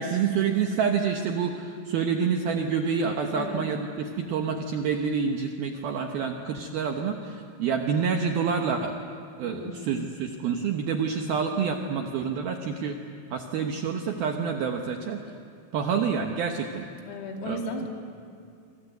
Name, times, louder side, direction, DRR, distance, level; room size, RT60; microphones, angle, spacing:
voice 1, 0.0-9.0 9.4-13.0 13.3-15.2 15.7-16.8 17.4-17.9, right 6 dB, 75° right, 3 dB, 2.2 m, -28 dB
voice 2, 3.3-3.7 9.4-10.1 17.1-17.9, left 4 dB, 85° left, 2 dB, 5.3 m, -36 dB
26.5 x 25.0 x 8.1 m, 2.4 s
omnidirectional pair, 5.9 m